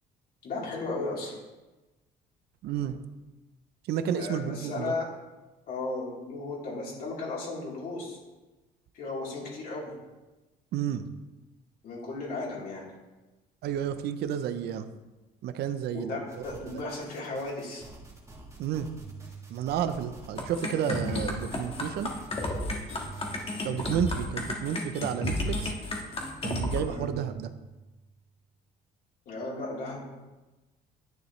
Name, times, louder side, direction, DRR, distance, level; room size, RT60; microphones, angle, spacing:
voice 1, 0.4-1.4 4.1-5.1 5.7-8.2 8.9-9.9 11.8-12.9 15.9-17.8 26.9-27.1 29.3-30.0, left 3 dB, 60° left, -5 dB, 3.8 m, -35 dB
voice 2, 2.6-3.0 3.8-4.9 10.7-11.1 13.6-14.9 15.4-16.2 16.6-16.8 18.6-18.9 19.5-22.1 23.6-25.7 26.4-27.5, right 9 dB, 75° right, 10 dB, 0.7 m, -31 dB
sound 1, 16.3-23.7, right 2 dB, 20° right, 1.7 m, -50 dB
sound 2, 19.0-20.2 21.0-22.2 23.0-24.2 25.0-26.2 27.0-28.2, right 6 dB, 60° right, 2.6 m, -47 dB
sound 3, 20.4-26.8, left 1 dB, 35° left, 1.7 m, -32 dB
10.5 x 9.2 x 3.3 m, 1.1 s
cardioid pair, 110°, 17 cm